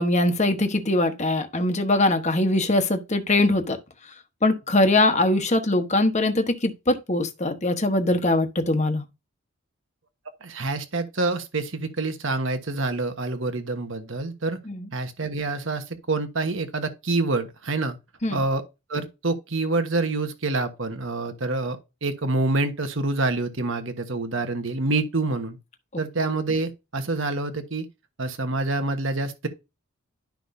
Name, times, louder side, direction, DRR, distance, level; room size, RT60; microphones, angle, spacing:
voice 1, 0.0-3.8 4.4-9.0 14.7-14.9 18.2-18.4, left 2 dB, 30° left, 1.1 m, -22 dB
voice 2, 10.4-14.6 14.9-18.0 18.3-18.6 18.9-25.6 26.0-27.8 28.2-29.5, right 2 dB, 60° right, 1.3 m, -27 dB
11.5 x 6.0 x 2.7 m
head